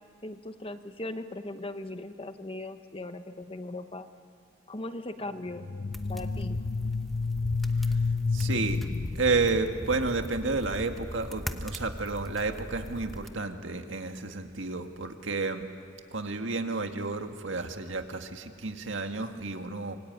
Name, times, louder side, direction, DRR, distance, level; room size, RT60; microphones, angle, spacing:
voice 1, 0.2-4.1 4.7-5.7 6.1-6.6, left 2 dB, 30° left, 8 dB, 1.1 m, -38 dB
sound 1, 5.5-10.3, left 4 dB, 45° left, 0.6 m, -30 dB
sound 2, 5.9-13.3, equal, ahead, 1.1 m, -40 dB
voice 2, 8.3-8.8 9.1-15.7 16.1-20.0, right 3 dB, 80° right, 6 dB, 1.8 m, -31 dB
25.5 x 23.5 x 9.5 m, 2.3 s
head